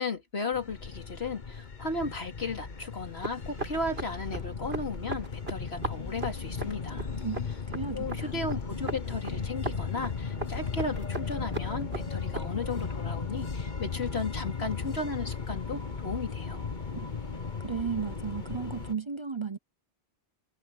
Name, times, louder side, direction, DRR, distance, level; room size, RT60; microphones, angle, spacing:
voice 1, 0.0-7.1 7.9-16.6, left 3 dB, 75° left, 3.2 m, -35 dB
sound 1, 0.5-18.9, left 5 dB, 50° left, 1.4 m, -36 dB
sound 2, 3.0-12.9, right 2 dB, 70° right, 5.3 m, -39 dB
voice 2, 7.7-8.3 16.9-17.1 17.6-19.6, right 6 dB, 30° right, 0.6 m, -34 dB
omnidirectional pair, 1.1 m